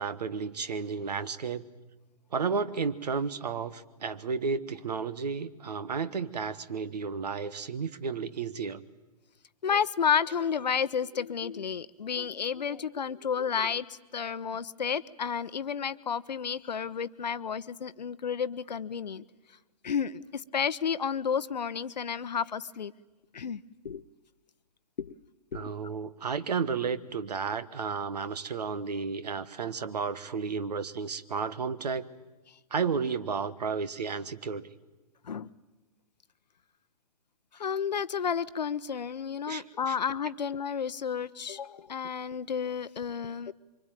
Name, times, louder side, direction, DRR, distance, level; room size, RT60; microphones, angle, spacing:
voice 1, 0.0-1.7 2.3-8.8 25.5-32.0 32.7-34.7 39.5-40.0, right 5 dB, 70° right, 15 dB, 1.5 m, -32 dB
voice 2, 9.6-19.2 19.8-22.9 23.3-24.0 25.0-25.1 25.5-25.7 35.2-35.5 37.5-43.5, left 7 dB, 80° left, 15 dB, 0.8 m, -31 dB
24.5 x 24.5 x 9.1 m, 1.2 s
hypercardioid pair, 125°, 21 cm